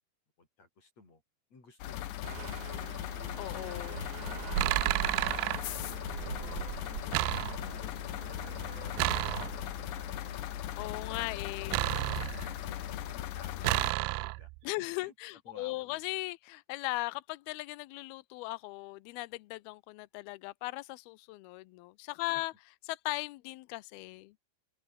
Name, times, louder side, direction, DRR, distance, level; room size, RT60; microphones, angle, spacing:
voice 1, 0.4-1.2 1.5-3.1 6.4-7.1 7.8-10.6 11.6-14.5 15.0-15.1 15.5-16.0 22.3-22.5, left 3 dB, 35° left, 8.7 m, -58 dB
sound 1, 1.8-13.9, left 14 dB, 65° left, 2.4 m, -39 dB
sound 2, 2.2-13.2, right 12 dB, 65° right, 1.9 m, -42 dB
voice 2, 3.4-4.1 7.4-7.8 10.8-11.8 14.6-22.5 22.9-24.3, left 21 dB, 85° left, 2.2 m, -38 dB
sound 3, 3.8-4.1 4.6-5.6 7.1-7.9 9.0-9.8 11.7-12.7 13.6-14.6, right 24 dB, 85° right, 2.7 m, -31 dB
open air
omnidirectional pair, 5.2 m